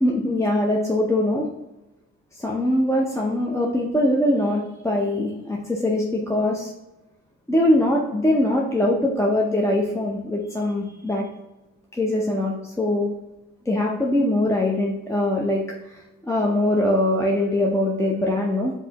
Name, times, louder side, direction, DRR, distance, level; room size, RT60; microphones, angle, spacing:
voice 1, 0.0-1.5 2.3-6.7 7.5-11.2 11.9-13.1 13.7-15.6 15.9-18.7, left 1 dB, 10° left, -2 dB, 0.5 m, -22 dB
5.2 x 2.8 x 2.9 m, 0.99 s
cardioid pair, 90°, 30 cm